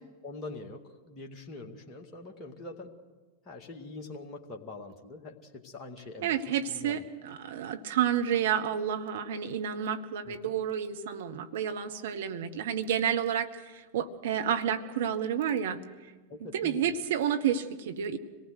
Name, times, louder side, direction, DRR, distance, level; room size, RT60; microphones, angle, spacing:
voice 1, 0.2-2.9 3.5-7.1 10.3-10.4 16.3-16.8, left 3 dB, 25° left, 1 dB, 2.2 m, -44 dB
voice 2, 6.2-15.8 16.4-18.2, right 9 dB, 55° right, 8 dB, 1.2 m, -30 dB
26.0 x 19.0 x 6.5 m, 1.3 s
figure-of-eight pair, 90°, 0 cm